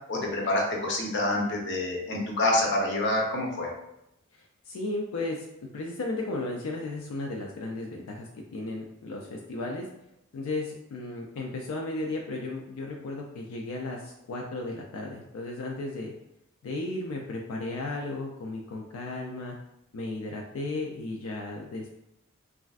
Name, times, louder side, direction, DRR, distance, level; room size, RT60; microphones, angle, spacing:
voice 1, 0.1-3.7, left 1 dB, 55° left, -1 dB, 0.7 m, -27 dB
voice 2, 4.3-5.5 5.7-9.9 10.3-16.1 16.6-19.6 19.9-22.0, left 2 dB, 90° left, 0 dB, 0.4 m, -35 dB
3.2 x 2.4 x 2.3 m, 0.84 s
head